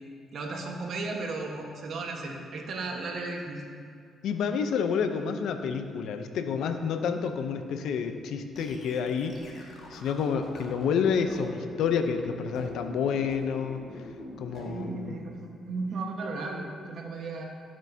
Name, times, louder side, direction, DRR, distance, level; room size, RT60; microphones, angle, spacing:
voice 1, 0.3-3.7 14.5-17.5, right 3 dB, 60° right, 1 dB, 1.3 m, -35 dB
voice 2, 4.2-9.4 9.9-14.1 14.4-15.2, left 6 dB, 80° left, 8 dB, 0.6 m, -29 dB
sound 1, 8.5-15.1, left 2 dB, 50° left, 1.8 m, -43 dB
14.0 x 7.5 x 2.8 m, 2.2 s
cardioid pair, 90°, 0 cm